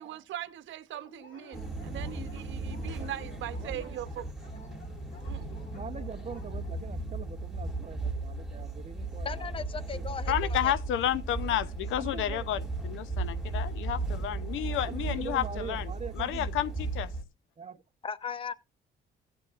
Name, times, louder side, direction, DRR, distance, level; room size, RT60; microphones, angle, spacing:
voice 1, 0.0-4.3 5.2-5.5, right 11 dB, 75° right, 0.9 m, -40 dB
Dog, 0.9-6.8, left 4 dB, 45° left, 2.7 m, -54 dB
sound 1, 1.5-17.2, right 3 dB, ahead, 2.5 m, -36 dB
voice 2, 3.6-4.0 5.7-9.5 9.9-10.2 11.4-11.6 12.0-12.5 14.7-16.5 17.6-17.8, right 6 dB, 35° right, 0.7 m, -43 dB
voice 3, 9.2-10.7 18.0-18.5, left 6 dB, 25° left, 0.7 m, -37 dB
voice 4, 10.3-12.6 12.8-15.9 16.2-17.1, left 11 dB, 80° left, 0.6 m, -31 dB
16.0 x 7.8 x 2.4 m
cardioid pair, 90°, 20 cm